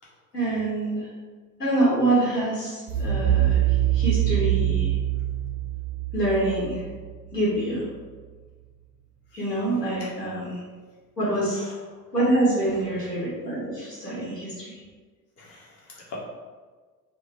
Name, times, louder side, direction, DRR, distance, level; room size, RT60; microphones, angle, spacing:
voice 1, 0.3-1.1 1.6-3.6 3.9-5.0 6.1-6.8 7.3-7.9 9.3-10.6 11.2-11.7 12.1-14.8, right 1 dB, 85° left, -7 dB, 1.0 m, -25 dB
sound 1, 2.9-7.7, right 12 dB, 20° right, 0.5 m, -24 dB
voice 2, 15.4-16.2, left 3 dB, 30° left, -4 dB, 1.1 m, -44 dB
3.6 x 2.1 x 3.4 m, 1.4 s
figure-of-eight pair, 70°, 47 cm